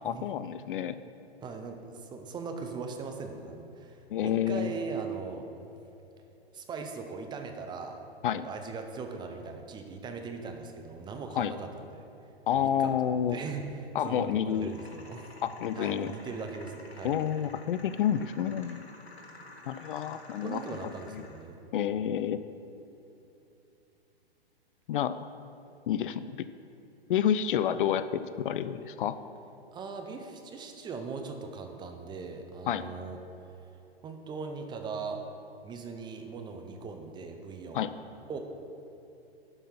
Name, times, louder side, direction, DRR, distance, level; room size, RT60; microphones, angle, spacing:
voice 1, 0.0-1.0 4.1-4.7 8.2-8.5 11.4-11.5 12.5-13.4 13.9-14.7 15.4-16.1 17.0-18.8 19.7-20.6 21.1-21.2 21.7-22.4 24.9-25.2 25.9-26.5 27.1-29.2 32.7-32.8 37.7-37.9, left 9 dB, 55° left, 13 dB, 0.4 m, -29 dB
voice 2, 1.4-5.5 6.5-8.0 8.3-12.1 12.5-15.3 15.8-17.2 20.4-21.6 29.7-33.2 34.0-35.2 35.6-37.9 38.3-38.4, right 4 dB, 15° right, 5 dB, 0.6 m, -39 dB
sound 1, 14.5-21.5, left 2 dB, 85° left, 1.6 m, -51 dB
11.0 x 5.5 x 5.6 m, 2.9 s
hypercardioid pair, 120°, 31 cm